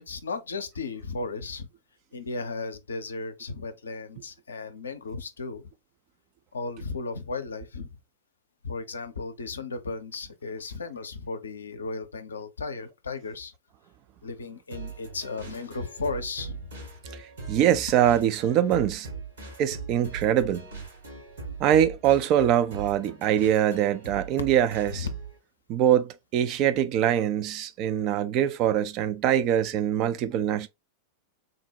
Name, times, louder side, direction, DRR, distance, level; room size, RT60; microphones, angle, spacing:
voice 1, 0.0-1.7 2.1-5.7 6.5-7.9 8.6-13.5 14.2-16.8 24.9-25.1, left 3 dB, 70° left, 0.5 m, -35 dB
sound 1, 14.7-25.4, right 4 dB, 70° right, 1.8 m, -41 dB
voice 2, 17.1-19.1 19.6-20.6 21.6-25.1 25.7-30.7, right 10 dB, 40° right, 0.4 m, -23 dB
3.8 x 2.1 x 2.7 m
figure-of-eight pair, 90°, 0 cm